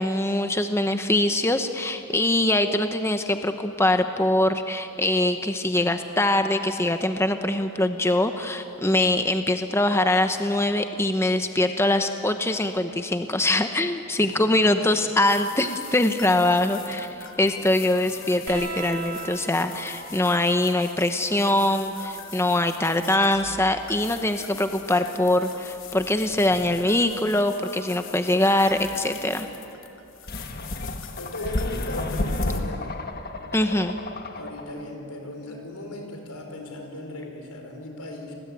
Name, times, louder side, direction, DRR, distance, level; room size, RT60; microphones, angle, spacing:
voice 1, 0.0-29.5 33.5-34.0, left 1 dB, 10° left, 7 dB, 0.9 m, -23 dB
voice 2, 14.2-15.0 31.2-32.9 34.3-38.3, left 1 dB, 80° left, 3 dB, 5.2 m, -37 dB
sound 1, 15.2-32.6, left 8 dB, 60° left, 2.4 m, -43 dB
sound 2, 18.5-25.5 26.9-27.7 29.0-29.1, right 4 dB, 75° right, 5.6 m, -43 dB
sound 3, 30.3-34.8, left 1 dB, 45° left, 1.6 m, -31 dB
30.0 x 20.5 x 9.3 m, 2.8 s
head